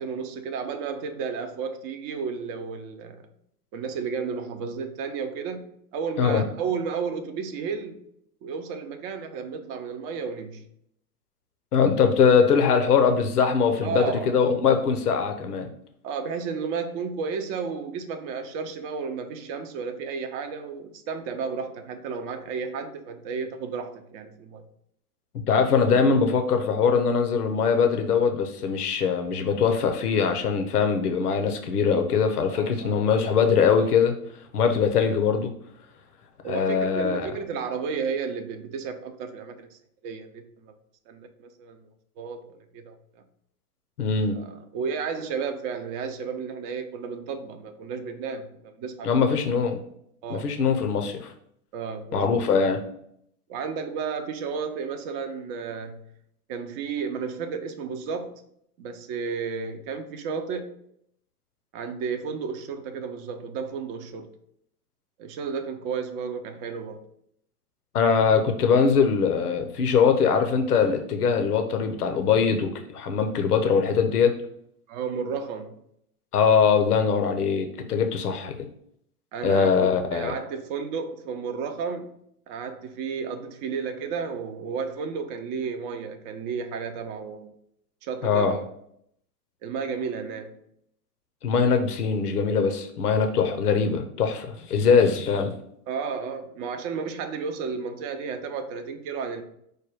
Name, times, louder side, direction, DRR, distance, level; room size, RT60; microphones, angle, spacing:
voice 1, 0.0-3.2 3.7-8.0 8.4-10.7 13.8-14.3 16.0-24.6 32.4-33.0 36.4-39.8 40.0-40.7 41.1-41.9 42.2-43.0 44.3-49.4 50.2-50.5 51.7-52.5 53.5-56.1 56.5-58.4 58.8-60.7 61.7-64.3 65.2-67.0 68.1-68.2 74.9-75.8 79.3-82.2 82.5-87.5 88.0-88.7 89.6-90.6 95.9-99.4, right 5 dB, 40° right, 7 dB, 0.6 m, -33 dB
voice 2, 11.7-15.7 25.5-34.2 34.5-35.5 36.5-37.3 44.0-44.4 49.0-49.8 50.3-51.3 52.1-52.8 67.9-74.3 76.3-78.5 79.4-80.3 88.2-88.5 91.4-95.5, left 6 dB, 90° left, 5 dB, 0.6 m, -22 dB
4.9 x 2.2 x 4.6 m, 0.72 s
hypercardioid pair, 100°, 44 cm